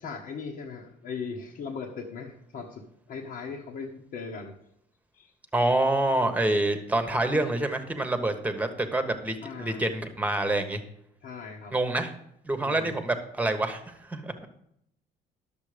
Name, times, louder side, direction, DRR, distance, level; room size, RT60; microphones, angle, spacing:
voice 1, 0.0-4.5 5.1-5.3 9.4-9.8 11.2-11.7 12.6-12.9, left 5 dB, 60° left, -2 dB, 1.4 m, -38 dB
voice 2, 5.5-10.8 11.7-12.1 12.4-14.5, right 2 dB, 10° right, 8 dB, 1.3 m, -27 dB
11.0 x 7.1 x 5.1 m, 0.76 s
cardioid pair, 110°, 17 cm